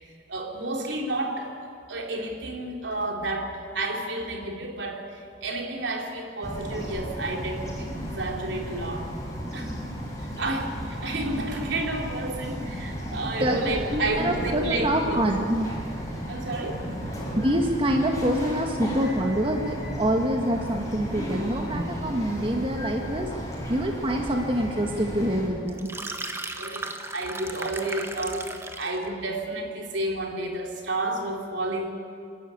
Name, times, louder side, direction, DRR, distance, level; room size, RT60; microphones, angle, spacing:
voice 1, 0.3-1.5 1.9-5.0 5.4-9.0 9.5-9.9 10.4-15.3 16.3-16.8 26.5-28.5 28.8-31.9, right 2 dB, 75° right, 1 dB, 3.5 m, -31 dB
Bird vocalization bird call bird song, 6.4-25.5, equal, 20° left, 6.0 m, -34 dB
voice 2, 13.2-15.7 17.3-23.3 23.7-25.9, right 1 dB, 30° right, 1 dB, 1.6 m, -26 dB
sound 1, 25.7-29.0, right 2 dB, 15° right, 1.2 m, -36 dB
30.0 x 12.5 x 9.6 m, 2.3 s
head